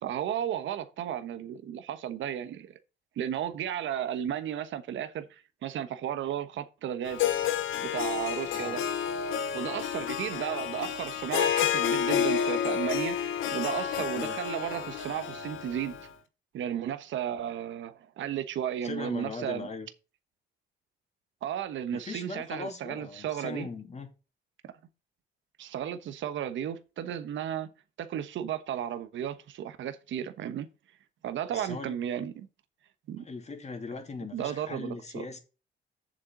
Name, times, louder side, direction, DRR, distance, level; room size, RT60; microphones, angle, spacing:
voice 1, 0.0-2.8 3.2-7.3 7.8-8.8 9.5-16.0 16.5-19.7 21.4-23.7 24.6-24.7 25.6-27.7 28.0-30.7 31.2-32.5 33.1-33.2 34.3-35.3, right 10 dB, 75° right, 1.2 m, -34 dB
Harp, 7.1-16.1, left 9 dB, 85° left, 1.1 m, -30 dB
voice 2, 14.0-14.4 18.8-19.9 21.9-24.1 31.5-31.9 33.2-35.4, left 4 dB, 35° left, 2.7 m, -39 dB
7.6 x 7.4 x 3.9 m
cardioid pair, 90°, 20 cm